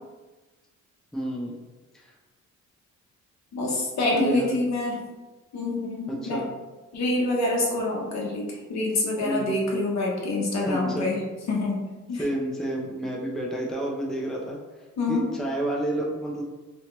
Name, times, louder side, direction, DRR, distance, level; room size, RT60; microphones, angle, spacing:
voice 1, 1.1-1.6 1.9-2.1 4.1-4.6 6.1-6.5 9.2-9.6 10.6-11.1 12.1-14.6 15.1-16.4, right 1 dB, ahead, -2 dB, 0.5 m, -30 dB
voice 2, 3.5-4.9 5.5-6.4 6.9-11.2 11.5-11.8 12.1-12.3 15.0-15.2, left 2 dB, 60° left, -2 dB, 0.9 m, -26 dB
3.0 x 2.4 x 3.0 m, 1.2 s
cardioid pair, 90°, 30 cm